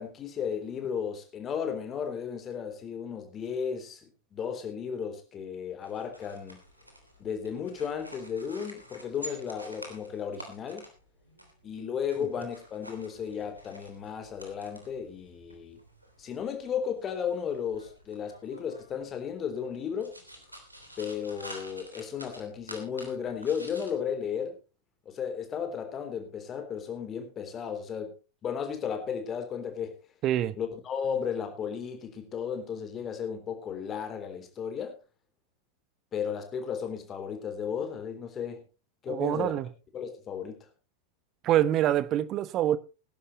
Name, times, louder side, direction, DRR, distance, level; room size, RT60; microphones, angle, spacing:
voice 1, 0.0-6.6 7.2-10.9 11.6-15.8 16.2-20.1 21.0-24.6 25.1-28.1 28.4-29.9 30.6-35.0 36.1-38.6 39.0-39.5 39.9-40.6, left 7 dB, 25° left, 3.5 m, -34 dB
sound 1, 5.8-23.9, equal, 85° right, 3.2 m, -49 dB
voice 2, 30.2-30.6 39.1-39.7 41.4-42.8, right 12 dB, 35° right, 0.9 m, -25 dB
20.5 x 11.0 x 3.1 m
figure-of-eight pair, 90°, 0 cm